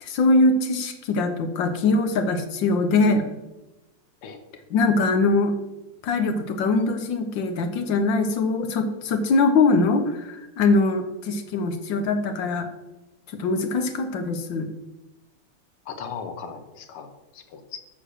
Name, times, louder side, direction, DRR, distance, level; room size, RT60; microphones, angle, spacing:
voice 1, 0.0-3.3 4.7-5.6 6.0-12.7 13.3-14.7, left 3 dB, 65° left, 8 dB, 1.4 m, -22 dB
voice 2, 15.9-17.8, left 6 dB, 80° left, 7 dB, 1.9 m, -37 dB
8.0 x 6.1 x 6.3 m, 1.0 s
omnidirectional pair, 2.4 m